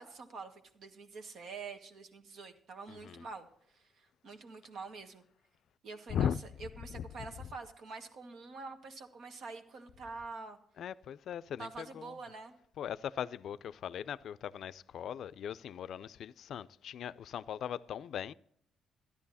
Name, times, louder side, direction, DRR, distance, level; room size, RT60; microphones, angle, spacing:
voice 1, 0.0-5.2 5.8-6.3 6.6-10.6 11.6-12.5, right 4 dB, 70° right, 1.6 m, -46 dB
voice 2, 2.9-3.2 6.1-6.4 6.9-7.0 10.8-12.1 12.8-18.3, left 9 dB, 65° left, 0.4 m, -38 dB
12.5 x 10.0 x 4.1 m
cardioid pair, 90°, 0 cm